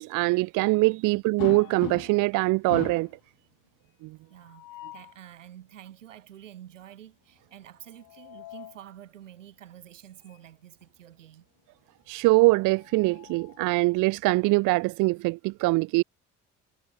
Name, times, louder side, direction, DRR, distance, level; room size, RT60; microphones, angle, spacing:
voice 1, 0.0-3.1 4.0-4.2 12.1-16.0, right 23 dB, 55° right, 0.5 m, -23 dB
sound 1, 1.4-2.3 2.7-3.2 4.4-5.2 7.8-8.8 10.3-10.4 10.8-10.9 12.4-13.7, left 16 dB, 60° left, 1.3 m, -41 dB
voice 2, 4.3-11.5, right 11 dB, 90° right, 2.8 m, -48 dB
hypercardioid pair, 55°, 37 cm